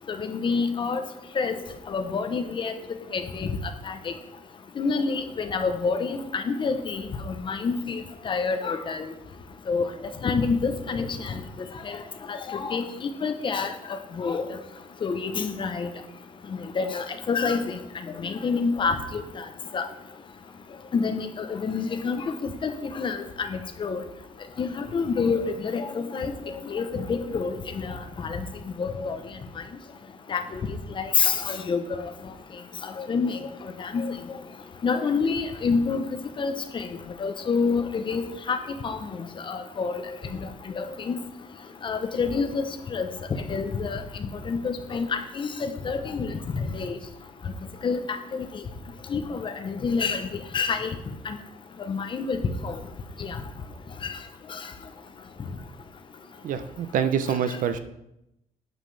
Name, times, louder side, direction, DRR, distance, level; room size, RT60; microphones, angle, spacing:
voice 1, 0.1-1.0 1.4-1.6 1.9-2.7 3.1-3.5 3.9-4.0 4.8-9.1 9.7-9.9 10.2-11.4 11.9-12.0 12.3-12.8 13.2-13.7 14.2-14.5 15.0-15.9 16.8-17.8 18.2-19.2 19.7-19.8 20.9-24.0 24.6-26.3 26.7-28.4 28.8-29.1 30.3-30.4 31.0-32.1 33.0-33.4 33.8-34.1 34.8-36.0 36.4-36.9 37.2-38.6 38.8-39.0 39.5-40.0 40.4-40.5 40.8-41.1 41.8-42.7 42.9-43.1 43.5-44.0 44.5-45.1 45.3-47.0 47.8-48.0 48.3-48.5 49.1-50.3 50.5-50.9 51.3-51.4 51.9-52.4 52.6-52.7 53.2-53.4 54.0-54.1, left 5 dB, 35° left, 7 dB, 0.8 m, -27 dB
voice 2, 56.4-57.8, right 8 dB, 60° right, 10 dB, 0.6 m, -26 dB
9.0 x 7.4 x 3.3 m, 0.84 s
cardioid pair, 145°, 15 cm